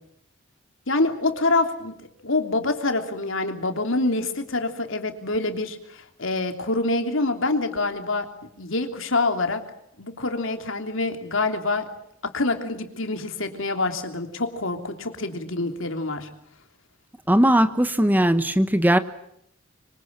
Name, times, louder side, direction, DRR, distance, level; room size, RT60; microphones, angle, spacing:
voice 1, 0.9-1.9 2.2-8.3 8.6-9.6 10.0-11.9 12.2-16.3, left 2 dB, 75° left, 3.2 m, -26 dB
voice 2, 17.3-19.0, right 1 dB, 10° right, 1.0 m, -19 dB
25.5 x 25.0 x 8.8 m
head